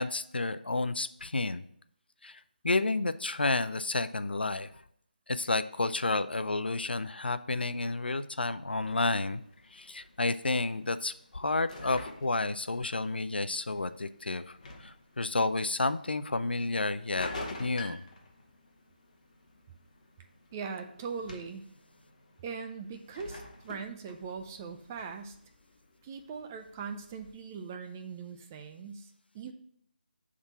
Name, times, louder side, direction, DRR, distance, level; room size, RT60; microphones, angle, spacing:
voice 1, 0.0-1.6 2.2-2.4 2.6-4.7 5.3-9.4 9.7-17.3 17.6-18.0, left 3 dB, 80° left, 12 dB, 0.4 m, -31 dB
sound 1, 8.7-27.3, left 2 dB, 45° left, 1.0 m, -49 dB
voice 2, 20.5-21.7 22.4-25.4 26.0-29.5, right 5 dB, 15° right, 6 dB, 0.4 m, -40 dB
5.4 x 3.7 x 5.9 m, 0.67 s
figure-of-eight pair, 160°, 5 cm